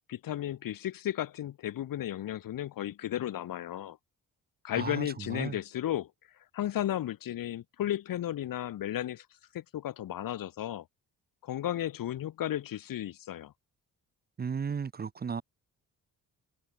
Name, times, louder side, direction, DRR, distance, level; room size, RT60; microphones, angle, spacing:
voice 1, 0.1-4.0 4.6-6.1 6.5-9.3 9.5-10.8 11.4-13.5, left 12 dB, 75° left, 3.0 m, -34 dB
voice 2, 4.8-5.6 14.4-15.4, right 6 dB, 25° right, 1.0 m, -35 dB
cardioid pair, 150°, 34 cm